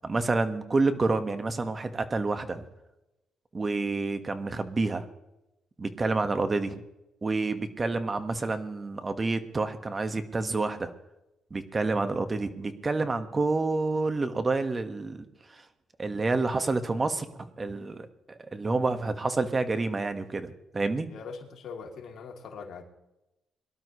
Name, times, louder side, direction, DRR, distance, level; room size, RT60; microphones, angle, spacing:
voice 1, 0.0-2.6 3.5-5.0 5.8-6.8 7.2-10.9 11.5-15.2 16.0-18.1 18.5-21.1, right 3 dB, 30° right, 9 dB, 1.5 m, -28 dB
voice 2, 21.1-22.8, left 5 dB, 70° left, 1 dB, 2.9 m, -41 dB
23.5 x 12.0 x 3.2 m, 0.93 s
cardioid pair, 90°, 0 cm